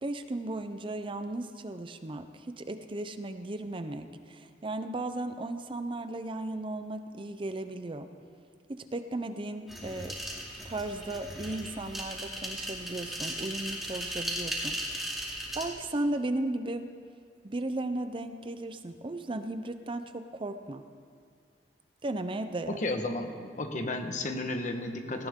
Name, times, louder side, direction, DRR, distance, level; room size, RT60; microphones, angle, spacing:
voice 1, 0.0-8.1 8.7-10.2 10.6-15.0 15.6-16.9 17.4-20.8 22.0-22.8, right 2 dB, 30° right, 9 dB, 0.6 m, -35 dB
sound 1, 9.7-15.7, equal, ahead, 2.6 m, -37 dB
voice 2, 22.7-25.3, left 2 dB, 45° left, 5 dB, 1.3 m, -33 dB
18.0 x 17.5 x 3.7 m, 2.2 s
head